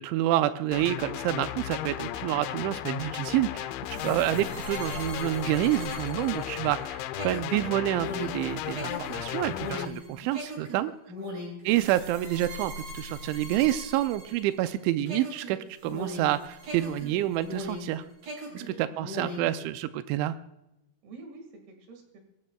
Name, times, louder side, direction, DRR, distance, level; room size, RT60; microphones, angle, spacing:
voice 1, 0.0-3.7 4.0-10.9 11.7-18.0 18.5-20.3, right 14 dB, 90° right, 11 dB, 2.9 m, -28 dB
sound 1, 0.7-9.9, left 13 dB, 90° left, 3.0 m, -35 dB
sound 2, 3.8-14.7 15.1-17.9 18.2-19.5, equal, 45° right, 7.2 m, -40 dB
voice 2, 3.9-4.3 10.0-10.3 11.1-11.3 18.5-19.1 21.0-22.2, right 3 dB, 65° right, 4 dB, 3.8 m, -48 dB
22.5 x 14.0 x 2.3 m, 0.87 s
omnidirectional pair, 5.2 m